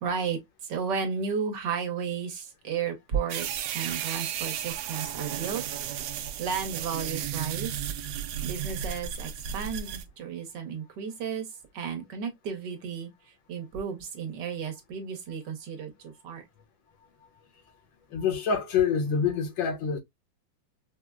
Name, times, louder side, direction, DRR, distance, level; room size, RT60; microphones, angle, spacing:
voice 1, 0.0-5.6 6.4-7.8 8.1-11.5 11.7-16.4, right 6 dB, 70° right, 1.5 m, -33 dB
sound 1, 3.3-10.0, right 9 dB, 90° right, 1.3 m, -34 dB
voice 2, 18.1-20.0, left 6 dB, 80° left, 1.7 m, -26 dB
4.9 x 2.1 x 2.2 m
omnidirectional pair, 2.1 m